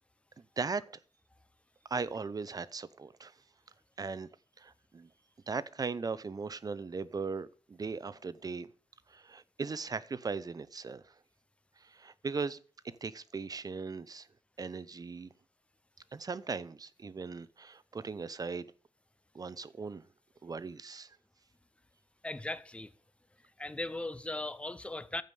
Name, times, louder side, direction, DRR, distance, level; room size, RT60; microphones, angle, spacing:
voice 1, 0.6-1.0 1.9-3.3 4.0-4.3 4.6-5.1 5.5-8.7 9.1-11.0 11.8-12.6 12.8-14.3 14.6-15.3 16.1-18.6 19.3-20.0 20.4-21.1, right 4 dB, 35° right, 0.8 m, -38 dB
voice 2, 22.2-22.9 23.6-25.2, left 2 dB, 10° left, 0.7 m, -38 dB
15.0 x 5.1 x 9.3 m
wide cardioid pair, 145°, 11 cm